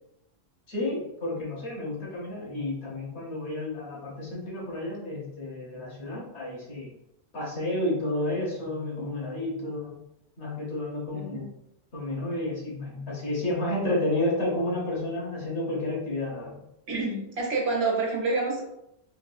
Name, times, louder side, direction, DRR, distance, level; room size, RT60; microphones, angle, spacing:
voice 1, 0.7-6.9 7.3-10.0 10.4-11.5 11.9-16.6, left 1 dB, 85° left, -4 dB, 1.4 m, -31 dB
voice 2, 11.1-11.5 16.9-18.6, right 3 dB, 75° right, -1 dB, 1.1 m, -28 dB
3.7 x 2.6 x 2.3 m, 0.82 s
omnidirectional pair, 1.1 m